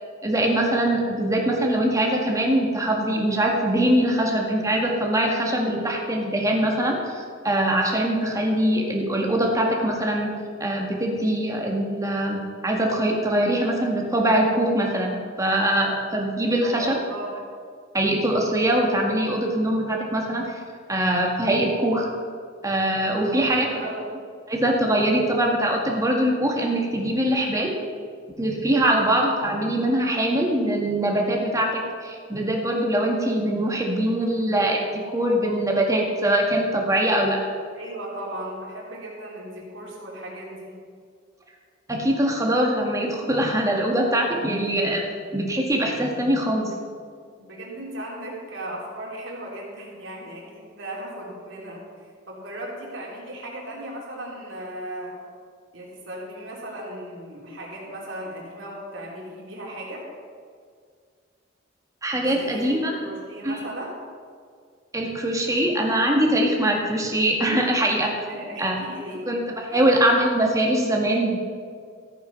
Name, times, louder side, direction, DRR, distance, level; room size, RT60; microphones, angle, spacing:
voice 1, 0.2-10.3 10.6-17.0 17.9-20.5 20.9-22.1 22.6-23.7 24.5-27.7 28.4-37.4 41.9-45.1 45.3-46.7 62.0-62.9 63.4-63.7 64.9-68.1 68.6-68.8 69.3-69.4 69.7-71.4, right 1 dB, 15° right, 0 dB, 1.9 m, -22 dB
voice 2, 16.6-17.3 23.1-24.1 37.7-40.7 47.4-55.2 55.7-60.0 62.2-63.9 68.3-69.3 69.7-69.9, right 1 dB, 75° right, -3 dB, 3.3 m, -36 dB
14.5 x 8.9 x 5.5 m, 2.1 s
head